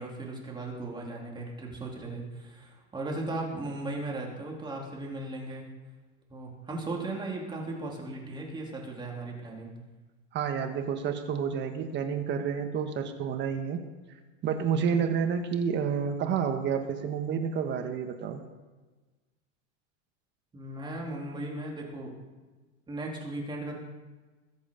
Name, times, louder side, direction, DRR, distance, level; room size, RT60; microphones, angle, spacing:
voice 1, 0.0-5.7 6.3-9.7 20.5-22.2 22.9-23.8, right 2 dB, 10° right, -1 dB, 2.8 m, -37 dB
voice 2, 10.3-13.8 14.4-18.4, right 7 dB, 30° right, 6 dB, 1.5 m, -29 dB
21.0 x 7.9 x 5.2 m, 1.2 s
supercardioid pair, 150°, 38 cm